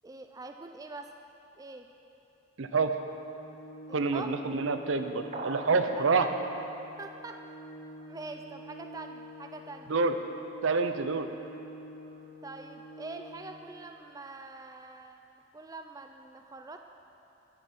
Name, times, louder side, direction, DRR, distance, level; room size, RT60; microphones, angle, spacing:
voice 1, 0.0-1.1 1.6-1.9 3.9-4.4 6.0-6.3 7.0-7.4 8.1-9.9 12.4-15.2 15.5-16.8, right 3 dB, 15° right, 5 dB, 0.3 m, -44 dB
voice 2, 2.6-2.9 3.9-6.3 9.9-10.2 10.6-11.3, right 4 dB, 80° right, 7 dB, 0.6 m, -27 dB
Organ, 2.9-13.9, equal, 80° left, 2.6 m, -48 dB
sound 1, 5.3-5.9, right 2 dB, 35° right, 0.7 m, -38 dB
10.0 x 9.7 x 5.4 m, 2.9 s
head